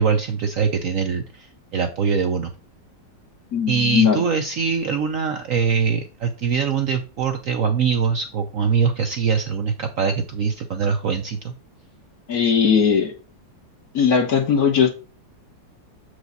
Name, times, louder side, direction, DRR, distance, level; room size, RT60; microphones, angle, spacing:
voice 1, 0.0-2.5 3.7-11.5, right 6 dB, 65° right, 6 dB, 0.9 m, -23 dB
voice 2, 3.5-4.2 12.3-13.1 13.9-14.9, left 7 dB, 55° left, 2 dB, 1.8 m, -18 dB
7.2 x 4.8 x 4.0 m, 0.34 s
omnidirectional pair, 2.0 m